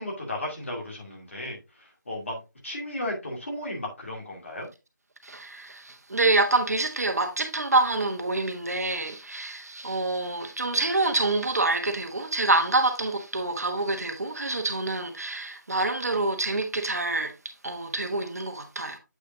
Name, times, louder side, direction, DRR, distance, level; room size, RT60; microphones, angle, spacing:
voice 1, 0.0-4.7, left 1 dB, 40° left, 2.4 m, -35 dB
voice 2, 5.2-19.0, right 2 dB, 55° right, 1.3 m, -26 dB
8.3 x 5.0 x 2.7 m
figure-of-eight pair, 175°, 10 cm